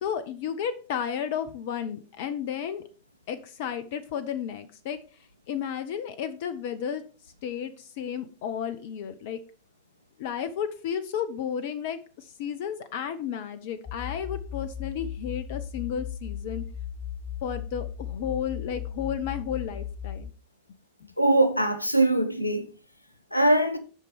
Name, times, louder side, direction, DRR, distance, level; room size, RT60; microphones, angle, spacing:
voice 1, 0.0-2.8 3.3-5.0 5.5-7.0 7.4-9.4 10.2-16.6 17.4-20.3 21.0-21.1, left 8 dB, 50° left, 0.8 m, -33 dB
sound 1, 13.9-20.3, left 9 dB, 25° left, 1.1 m, -36 dB
voice 2, 21.2-22.7 23.3-23.8, right 1 dB, 85° left, 1.1 m, -22 dB
8.4 x 6.0 x 5.2 m
figure-of-eight pair, 90°, 0 cm